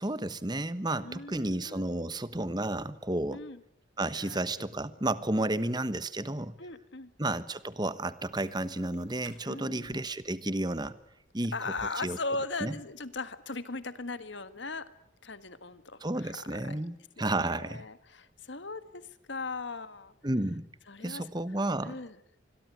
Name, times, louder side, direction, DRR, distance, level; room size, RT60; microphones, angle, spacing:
voice 1, 0.0-3.5 4.0-6.5 7.2-11.0 11.3-11.6 12.0-12.2 12.6-12.7 16.0-17.8 20.2-20.7 21.0-22.0, right 1 dB, 20° right, 15 dB, 1.1 m, -32 dB
voice 2, 0.9-1.8 3.3-3.6 4.1-4.7 6.6-7.1 9.4-10.0 11.5-14.9 15.2-19.0 19.3-20.1 20.9-21.2 21.8-22.2, left 3 dB, 65° left, 13 dB, 1.6 m, -39 dB
sound 1, 8.1-13.4, right 3 dB, 70° right, 4.2 m, -60 dB
26.0 x 22.0 x 9.3 m, 0.73 s
head